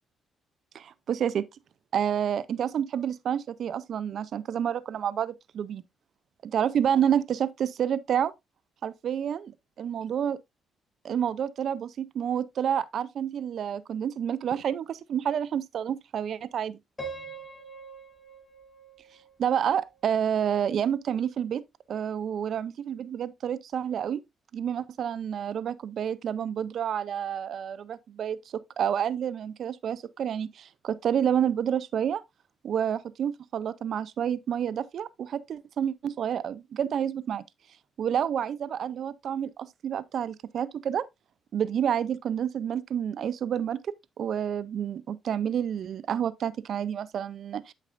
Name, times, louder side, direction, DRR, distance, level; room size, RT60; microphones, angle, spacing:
voice 1, 0.7-1.5 1.9-5.8 6.5-8.3 8.8-9.5 9.8-10.4 11.0-16.8 19.4-21.6 21.9-24.2 24.5-32.2 32.6-37.4 38.0-41.1 41.5-47.7, right 9 dB, 60° right, 0.5 m, -29 dB
Piano, 17.0-20.0, right 3 dB, 25° left, 2.7 m, -43 dB
8.5 x 6.6 x 2.5 m
cardioid pair, 90°, 0 cm